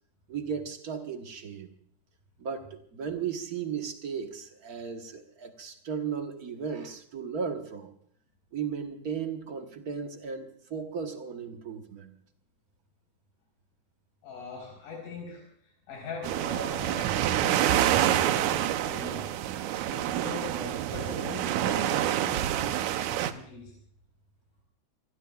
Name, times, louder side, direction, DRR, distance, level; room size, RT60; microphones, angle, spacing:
voice 1, 0.3-1.7 2.4-7.9 8.5-12.1, right 6 dB, 60° right, 4 dB, 0.9 m, -35 dB
voice 2, 14.2-15.4 15.9-19.3 19.9-23.7, left 4 dB, 85° left, -2 dB, 5.5 m, -41 dB
sound 1, 16.2-23.3, right 12 dB, 75° right, 2.1 m, -27 dB
26.5 x 20.0 x 2.4 m, 0.63 s
omnidirectional pair, 3.5 m